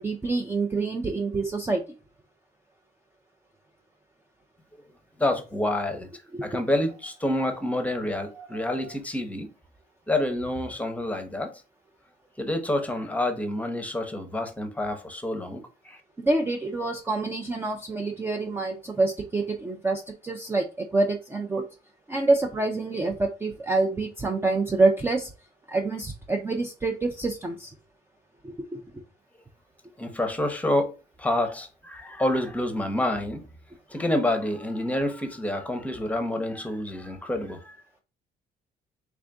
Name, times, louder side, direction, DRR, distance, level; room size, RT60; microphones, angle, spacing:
voice 1, 0.0-1.8 6.3-6.5 8.4-8.9 16.2-20.7 20.9-21.7 22.1-25.3 25.7-27.7 28.4-28.8, right 3 dB, 15° right, 0.4 m, -27 dB
voice 2, 5.2-6.1 6.4-9.5 10.1-11.5 12.4-16.0 30.0-33.4 33.9-37.8, left 1 dB, 10° left, 0.8 m, -28 dB
3.5 x 2.5 x 3.4 m
cardioid pair, 110°, 17 cm